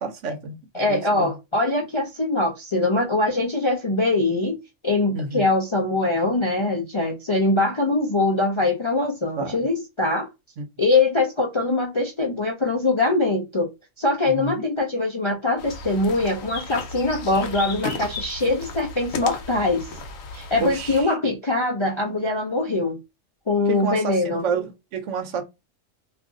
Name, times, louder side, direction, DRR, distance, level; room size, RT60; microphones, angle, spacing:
voice 1, 0.0-1.4 5.1-5.4 9.4-9.7 10.6-10.7 14.3-14.6 20.6-21.1 23.7-25.4, right 4 dB, 70° right, 0.9 m, -29 dB
voice 2, 0.7-4.6 4.8-10.3 10.8-13.7 14.0-19.9 20.3-23.0 23.5-24.4, left 2 dB, 40° left, 0.4 m, -22 dB
sound 1, 15.6-21.0, left 3 dB, 75° left, 1.1 m, -34 dB
2.5 x 2.4 x 3.7 m
omnidirectional pair, 1.4 m